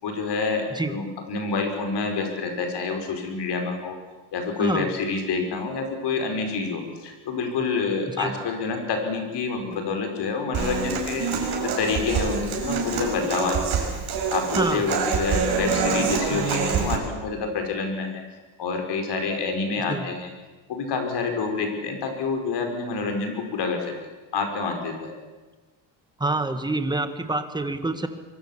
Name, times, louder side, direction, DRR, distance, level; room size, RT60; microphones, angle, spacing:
voice 1, 0.0-4.0 4.3-13.9 14.3-18.2 18.6-20.3 20.7-23.9 24.3-25.1, left 4 dB, 55° left, 5 dB, 5.2 m, -28 dB
voice 2, 4.6-4.9 8.2-8.3 14.6-14.8 19.9-20.0 26.2-28.1, right 2 dB, 10° right, 8 dB, 1.5 m, -26 dB
Human voice / Acoustic guitar, 10.5-17.0, right 5 dB, 50° right, 5.7 m, -26 dB
24.5 x 23.0 x 7.4 m, 1.2 s
cardioid pair, 160°, 48 cm